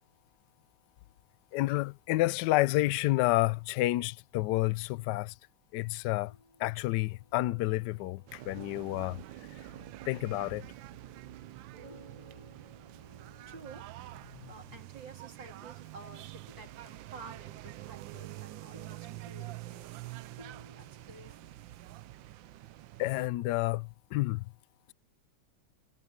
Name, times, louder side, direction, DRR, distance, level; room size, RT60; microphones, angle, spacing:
voice 1, 1.5-5.3 5.7-6.3 6.6-9.2 10.1-10.6 23.0-24.4, left 18 dB, 80° left, 0.9 m, -29 dB
sound 1, 6.0-16.1 16.4-21.5, right 1 dB, 15° right, 3.6 m, -59 dB
sound 2, 8.3-23.3, right 16 dB, 75° right, 1.2 m, -47 dB
voice 2, 13.5-13.9 14.5-20.0 20.7-21.6, right 3 dB, 55° right, 3.8 m, -51 dB
omnidirectional pair, 2.3 m